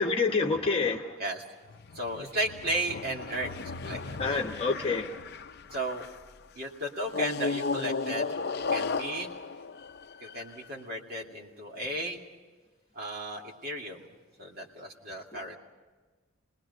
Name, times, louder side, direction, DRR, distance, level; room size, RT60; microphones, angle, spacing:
voice 1, 0.0-1.2 4.2-5.2, left 4 dB, 25° left, 1 dB, 1.1 m, -27 dB
sound 1, 1.6-6.3 7.1-10.7, left 4 dB, 50° left, 0.6 m, -35 dB
voice 2, 1.9-4.5 5.7-6.1 6.6-8.4 8.7-9.3 10.2-12.2 12.9-14.1 14.4-15.6, right 1 dB, 45° right, 0 dB, 2.6 m, -35 dB
30.0 x 20.5 x 5.5 m, 1.4 s
head